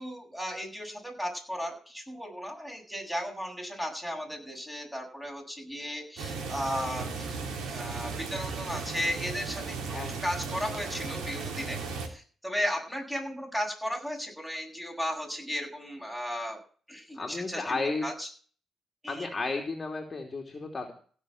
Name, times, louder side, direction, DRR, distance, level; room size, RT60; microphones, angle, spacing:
voice 1, 0.0-11.8 12.0-16.6 16.9-18.3 19.0-19.3, equal, 5° right, 1 dB, 7.8 m, -35 dB
sound 1, 6.2-12.1, right 4 dB, 80° right, 3.3 m, -36 dB
voice 2, 17.1-18.0 19.1-20.9, left 3 dB, 25° left, 1 dB, 3.0 m, -33 dB
16.5 x 6.6 x 7.8 m, 0.42 s
cardioid pair, 90°, 0 cm